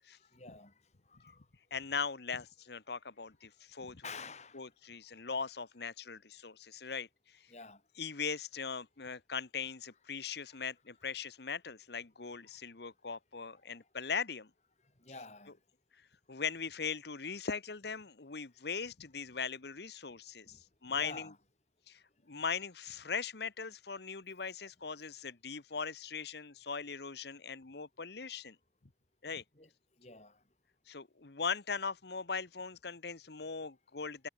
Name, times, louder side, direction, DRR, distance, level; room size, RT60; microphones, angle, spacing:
voice 1, 0.2-0.7 1.1-1.5 4.0-4.7 7.5-7.8 10.4-10.6 12.5-12.6 13.7-13.8 15.0-15.6 20.5-20.6 20.9-21.4 29.5-29.7 30.0-30.4, left 4 dB, 35° left, 3.7 m, -49 dB
voice 2, 1.7-4.0 4.5-7.5 8.0-14.5 16.3-21.3 21.9-28.6 29.2-29.4 30.9-34.3, left 5 dB, 60° left, 1.1 m, -40 dB
head